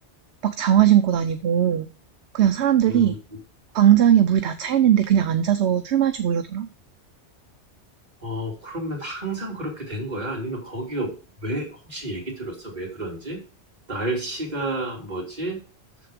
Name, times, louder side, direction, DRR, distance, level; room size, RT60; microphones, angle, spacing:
voice 1, 0.4-1.9 2.3-3.1 3.7-6.7, right 10 dB, 70° right, 9 dB, 0.9 m, -19 dB
voice 2, 2.8-3.4 8.2-13.4 13.9-15.7, right 1 dB, 35° right, -3 dB, 3.2 m, -31 dB
7.6 x 7.0 x 5.0 m, 0.35 s
omnidirectional pair, 1.2 m